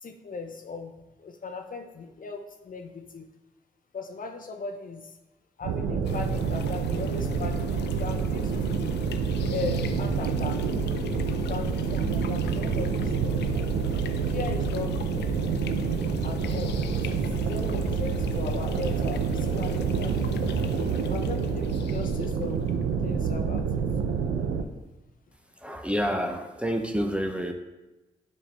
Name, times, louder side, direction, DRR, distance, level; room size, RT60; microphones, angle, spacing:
voice 1, 0.0-0.9 1.2-3.3 3.9-5.1 5.6-9.0 9.5-10.7 11.5-13.4 14.3-15.3 16.2-20.4 21.1-22.7 23.0-24.2, left 4 dB, 50° left, 4 dB, 0.8 m, -38 dB
sound 1, 5.6-24.6, right 6 dB, 80° right, 0.5 m, -28 dB
sound 2, 6.0-24.2, left 8 dB, 75° left, 0.4 m, -38 dB
voice 2, 25.6-27.5, equal, 5° right, 4 dB, 0.8 m, -28 dB
7.1 x 4.3 x 3.4 m, 1.0 s
supercardioid pair, 40°, 18 cm